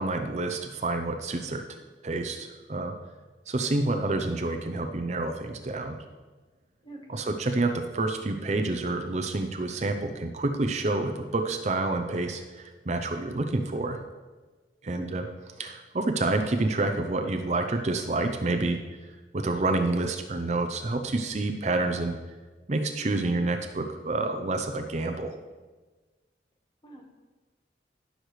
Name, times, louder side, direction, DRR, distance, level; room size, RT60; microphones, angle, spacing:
voice 1, 0.0-1.6 2.0-2.9 3.5-6.0 7.1-14.0 14.8-15.2 15.6-18.8 19.3-22.2 22.7-25.4, right 2 dB, 40° right, 5 dB, 0.6 m, -28 dB
voice 2, 6.8-7.3 14.9-15.1 26.8-27.1, right 1 dB, 25° left, 1 dB, 1.4 m, -45 dB
16.5 x 6.5 x 3.2 m, 1.3 s
head